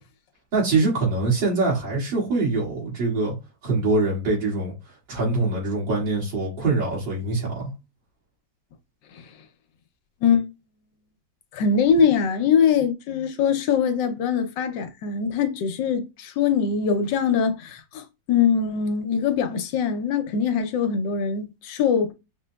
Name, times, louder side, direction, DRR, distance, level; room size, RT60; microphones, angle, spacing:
voice 1, 0.5-3.3 3.6-4.7 5.1-7.7, right 3 dB, 75° right, 2.8 m, -23 dB
voice 2, 11.5-22.1, left 6 dB, 75° left, 1.3 m, -22 dB
5.5 x 2.9 x 2.3 m
omnidirectional pair, 2.1 m